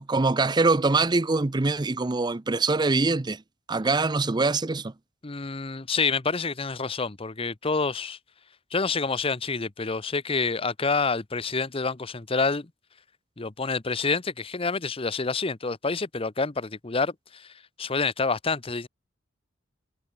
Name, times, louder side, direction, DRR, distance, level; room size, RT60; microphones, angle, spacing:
voice 1, 0.0-3.4 3.7-4.9, right 3 dB, 20° right, 0.5 m, -23 dB
voice 2, 5.2-8.2 8.7-12.7 13.4-17.5 17.8-18.9, left 4 dB, 30° left, 0.8 m, -28 dB
head